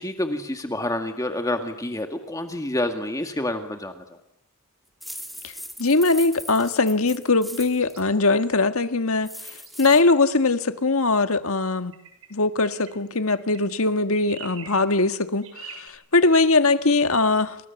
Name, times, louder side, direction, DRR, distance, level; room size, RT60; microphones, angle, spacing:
voice 1, 0.0-4.2, left 1 dB, 15° left, 1.9 m, -28 dB
sound 1, 5.0-8.0 9.2-10.0, equal, ahead, 2.3 m, -39 dB
voice 2, 5.8-11.9 12.3-17.6, left 3 dB, 70° left, 1.6 m, -21 dB
sound 2, 6.3-6.8 7.8-8.7 9.6-10.5 11.9-12.3 12.6-13.8 14.1-14.8 15.4-15.9, right 6 dB, 70° right, 6.9 m, -45 dB
30.0 x 27.5 x 7.2 m
head